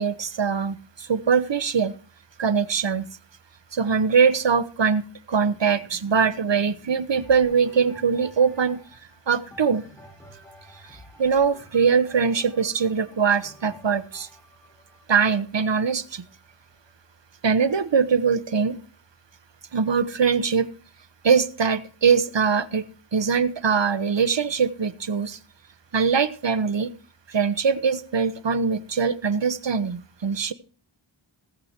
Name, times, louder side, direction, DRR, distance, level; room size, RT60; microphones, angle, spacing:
voice 1, 0.0-1.9 2.4-3.1 3.7-5.0 5.3-8.8 9.3-9.8 11.2-14.3 15.1-16.2 17.4-18.8 19.7-20.7 21.2-22.8 23.1-25.4 25.9-26.9 27.3-30.5, right 6 dB, 60° right, 14 dB, 1.0 m, -22 dB
sound 1, 7.1-16.9 17.5-17.6, left 1 dB, 5° left, 5.1 m, -50 dB
18.0 x 7.9 x 4.4 m, 0.40 s
wide cardioid pair, 55°, 50 cm